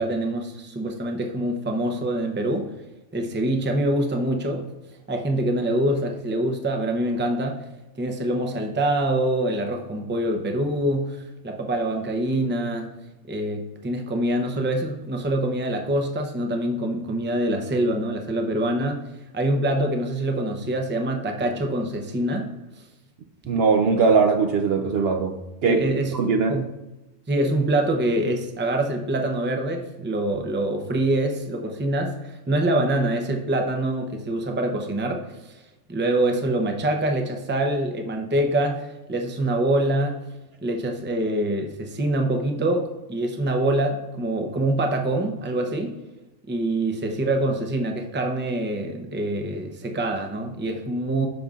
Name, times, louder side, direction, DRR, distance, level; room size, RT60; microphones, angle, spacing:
voice 1, 0.0-2.7 3.1-4.7 5.1-7.6 8.0-12.9 13.3-19.0 19.3-22.5 25.7-26.1 26.5-26.6 27.3-35.5 35.9-40.2 40.6-46.0 46.5-51.3, right 1 dB, 15° right, 3 dB, 0.5 m, -25 dB
voice 2, 23.5-25.4 25.6-25.8 26.1-26.6, right 5 dB, 65° right, 5 dB, 0.7 m, -20 dB
13.0 x 5.2 x 2.4 m, 1.0 s
omnidirectional pair, 1.3 m